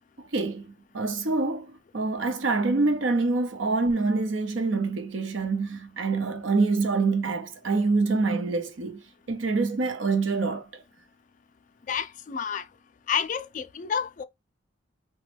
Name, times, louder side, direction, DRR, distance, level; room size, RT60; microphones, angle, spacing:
voice 1, 0.2-9.0 9.3-10.8, right 3 dB, 85° right, 0.7 m, -26 dB
voice 2, 11.9-12.6 13.1-14.2, left 7 dB, 40° left, 0.3 m, -29 dB
3.0 x 2.1 x 3.2 m
head